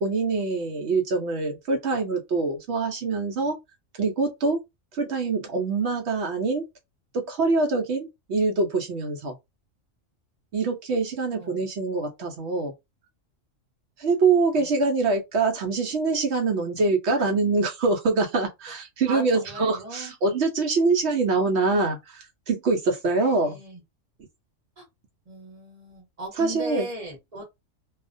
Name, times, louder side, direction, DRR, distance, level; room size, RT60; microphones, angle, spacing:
voice 1, 0.0-3.6 4.0-4.6 4.9-6.7 7.1-9.3 10.5-12.7 14.0-23.6 26.4-26.9, right 3 dB, 65° right, 0.8 m, -24 dB
voice 2, 19.1-20.1 23.2-23.8 24.8-24.9 25.3-27.4, right 1 dB, 35° right, 0.9 m, -38 dB
2.3 x 2.1 x 2.5 m
omnidirectional pair, 1.3 m